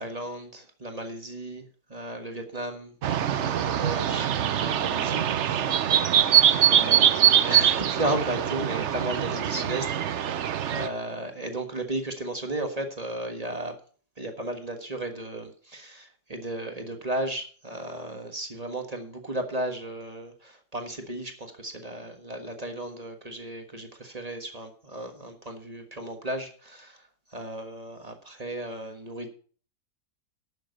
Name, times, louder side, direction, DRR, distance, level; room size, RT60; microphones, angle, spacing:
voice 1, 0.0-2.9 3.3-4.3 4.6-5.8 6.6-13.8 14.2-27.0 27.3-29.3, right 1 dB, 20° right, 5 dB, 1.5 m, -34 dB
sound 1, 3.0-10.9, right 10 dB, 65° right, 0.7 m, -23 dB
11.5 x 7.1 x 6.6 m, 0.43 s
omnidirectional pair, 2.0 m